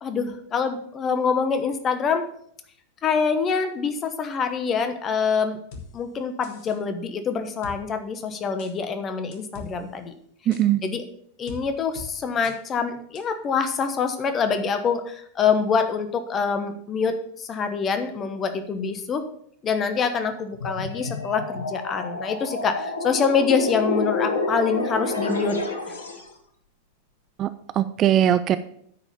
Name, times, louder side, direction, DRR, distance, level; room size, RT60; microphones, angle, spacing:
voice 1, 0.0-2.2 3.0-5.6 5.9-10.1 10.8-11.0 11.4-19.2 19.6-25.6 25.9-26.0, left 5 dB, 25° left, 8 dB, 1.1 m, -25 dB
sound 1, 5.7-5.9 6.4-6.8 7.6-7.8 8.6-8.7 9.3-9.7 10.5-10.6 11.5-11.6 12.0-12.1 12.4-12.6 13.2-13.3, left 4 dB, 50° left, 1.5 m, -40 dB
voice 2, 10.5-10.8 27.4-28.6, right 11 dB, 30° right, 12 dB, 0.4 m, -20 dB
sound 2, 20.5-26.3, left 3 dB, 70° left, 1.3 m, -29 dB
9.1 x 5.0 x 6.7 m, 0.66 s
figure-of-eight pair, 90°, 0 cm